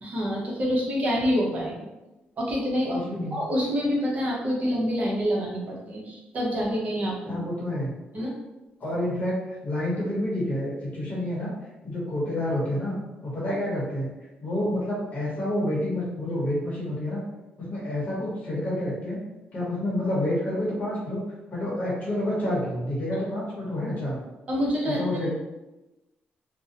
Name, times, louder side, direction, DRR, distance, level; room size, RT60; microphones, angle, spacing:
voice 1, 0.0-1.7 2.4-3.0 3.3-7.4 8.1-8.3 24.5-25.2, equal, 40° right, -3 dB, 0.8 m, -27 dB
voice 2, 2.9-3.4 7.3-8.2 8.8-11.5 11.8-12.9 13.2-14.1 14.4-17.2 17.6-19.2 19.5-21.2 21.5-24.2 24.8-25.3, left 1 dB, 45° left, -6 dB, 0.9 m, -28 dB
2.5 x 2.1 x 2.7 m, 1.0 s
cardioid pair, 120°, 4 cm